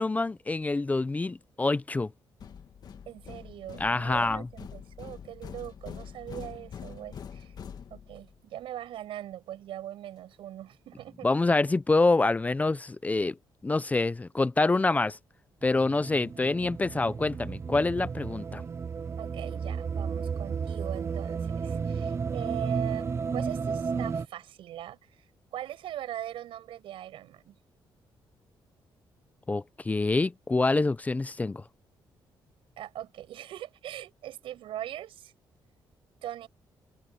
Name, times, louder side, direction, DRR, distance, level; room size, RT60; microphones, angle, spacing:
voice 1, 0.0-2.1 3.8-4.5 11.2-13.4 13.6-15.2 15.6-18.6 29.5-31.6, left 3 dB, 15° left, 0.5 m, -26 dB
sound 1, 2.4-8.4, left 7 dB, 50° left, 1.5 m, -44 dB
voice 2, 3.1-7.6 7.9-11.3 19.2-25.3 25.5-27.6 32.8-35.3 36.2-36.5, right 12 dB, 90° right, 7.2 m, -41 dB
sound 2, 15.6-24.3, right 5 dB, 30° right, 0.5 m, -33 dB
cardioid pair, 125°, 9 cm